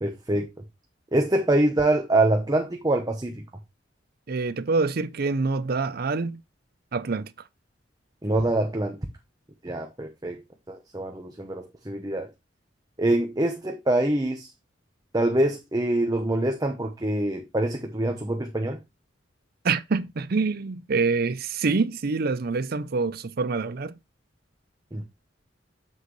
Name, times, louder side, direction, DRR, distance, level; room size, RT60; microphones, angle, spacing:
voice 1, 0.0-0.5 1.1-3.4 8.2-9.0 9.6-10.4 10.7-12.3 13.0-14.5 15.1-18.8 24.9-25.0, right 1 dB, 20° right, 1.0 m, -25 dB
voice 2, 4.3-6.4 6.9-7.3 19.6-23.9, right 4 dB, 55° right, 0.6 m, -26 dB
7.4 x 6.5 x 3.2 m
head